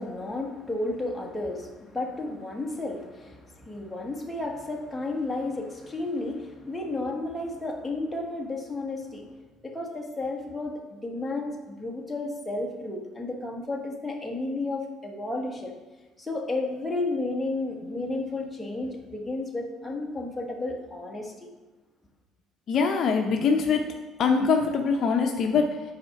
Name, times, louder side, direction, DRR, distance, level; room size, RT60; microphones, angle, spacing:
voice 1, 0.0-9.3 9.6-15.7 16.2-21.5, left 2 dB, 5° left, -1 dB, 1.2 m, -32 dB
voice 2, 22.7-23.9 24.2-25.8, left 5 dB, 45° left, 3 dB, 0.6 m, -23 dB
8.6 x 4.2 x 5.8 m, 1.2 s
cardioid pair, 135°, 0 cm